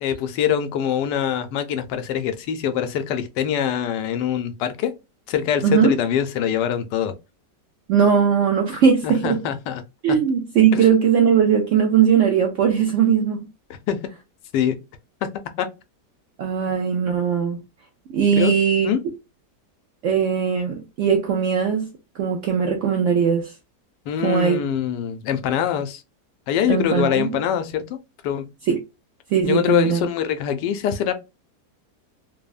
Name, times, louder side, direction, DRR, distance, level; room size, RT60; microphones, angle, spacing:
voice 1, 0.0-4.9 5.3-7.1 8.7-9.8 10.7-10.9 13.7-14.0 14.5-14.8 15.2-15.3 15.6-15.7 18.4-18.5 18.8-19.0 24.1-26.0 26.5-28.0 28.2-28.5 29.4-31.1, left 9 dB, 85° left, 1.2 m, -24 dB
voice 2, 5.6-5.9 7.9-9.4 10.0-13.5 16.4-17.6 18.1-18.9 20.0-21.9 22.2-23.5 24.2-24.6 26.7-27.4 28.7-28.8 29.3-30.0, right 7 dB, 75° right, 0.7 m, -19 dB
3.3 x 2.0 x 2.3 m
omnidirectional pair, 1.8 m